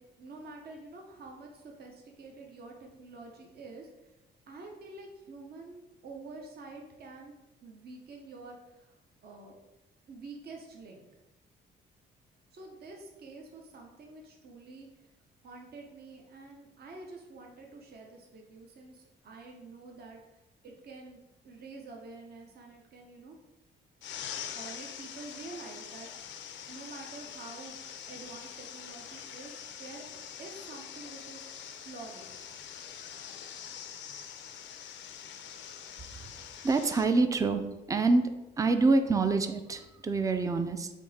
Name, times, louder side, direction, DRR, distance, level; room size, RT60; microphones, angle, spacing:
voice 1, 0.0-3.9 4.5-7.3 7.6-8.9 9.2-9.6 10.1-11.0 12.5-14.9 15.4-20.2 20.6-23.4 24.5-26.3 26.7-27.8 28.1-30.1 30.4-31.4 31.8-32.4, right 3 dB, 55° right, 1 dB, 0.7 m, -47 dB
sound 1, 24.0-37.0, left 8 dB, 70° left, 0.4 m, -44 dB
voice 2, 36.6-38.3 38.6-40.9, right 3 dB, 15° right, 8 dB, 0.3 m, -26 dB
3.6 x 2.8 x 4.1 m, 0.99 s
cardioid pair, 90°, 20 cm